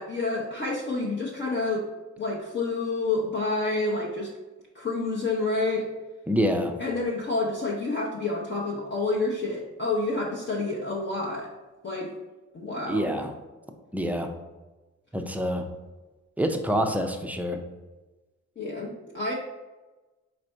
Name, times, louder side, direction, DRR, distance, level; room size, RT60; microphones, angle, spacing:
voice 1, 0.0-1.9 2.2-4.3 4.7-5.9 6.8-11.5 11.8-12.1 12.5-13.1 18.6-19.3, left 3 dB, 35° left, -3 dB, 0.7 m, -28 dB
voice 2, 6.3-6.7 12.9-13.3 13.9-14.3 15.1-15.7 16.4-17.6, equal, 5° right, 4 dB, 0.4 m, -26 dB
4.3 x 2.5 x 4.4 m, 1.2 s
cardioid pair, 90°, 30 cm